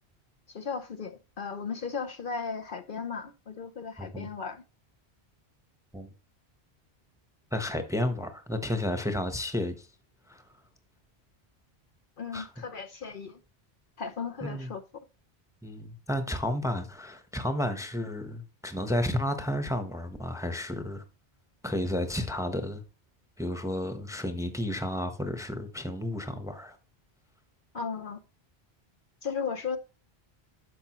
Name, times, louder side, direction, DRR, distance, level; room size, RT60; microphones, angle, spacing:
voice 1, 0.5-4.6 12.2-13.4 14.0-14.8 27.7-28.2 29.2-29.8, left 5 dB, 55° left, 0.9 m, -36 dB
voice 2, 7.5-9.9 10.3-10.4 12.3-12.5 14.4-14.7 15.6-21.0 21.6-22.8 23.4-26.8, left 1 dB, 5° right, 0.9 m, -32 dB
10.5 x 6.7 x 3.0 m
omnidirectional pair, 1.1 m